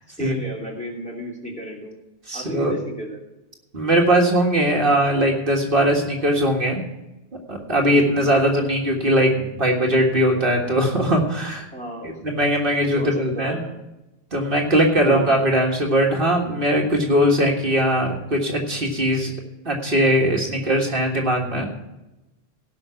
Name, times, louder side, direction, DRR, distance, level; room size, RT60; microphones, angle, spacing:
voice 1, 0.2-1.9 2.3-3.2 11.7-12.4 12.9-13.7 15.1-15.3, equal, 5° left, -3 dB, 2.8 m, -33 dB
voice 2, 2.3-2.7 3.7-6.8 7.5-11.7 12.2-13.6 14.3-19.3 19.7-21.7, equal, 55° right, 0 dB, 1.9 m, -20 dB
17.5 x 5.9 x 5.7 m, 0.98 s
omnidirectional pair, 1.1 m